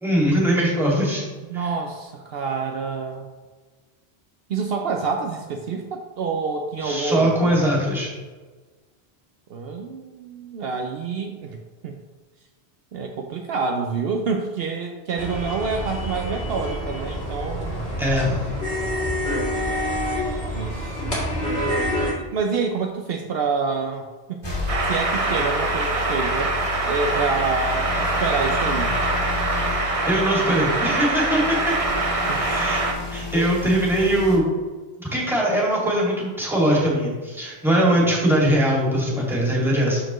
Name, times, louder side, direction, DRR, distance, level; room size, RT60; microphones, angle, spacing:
voice 1, 0.0-1.2 1.5-1.7 6.8-8.1 18.0-18.4 30.1-31.7 32.4-34.5 35.0-40.0, right 1 dB, ahead, -5 dB, 2.1 m, -21 dB
voice 2, 1.5-3.3 4.5-7.5 9.5-11.6 11.8-12.0 12.9-17.9 20.5-21.3 22.2-29.0 32.3-32.6 33.3-33.5 37.8-38.1, right 4 dB, 70° right, 3 dB, 0.8 m, -28 dB
sound 1, 15.2-22.1, equal, 70° left, 2.5 m, -27 dB
sound 2, 24.4-34.4, left 3 dB, 25° left, 1.8 m, -32 dB
sound 3, 24.7-32.9, right 2 dB, 35° right, 0.8 m, -24 dB
12.5 x 4.3 x 3.0 m, 1.3 s
omnidirectional pair, 1.1 m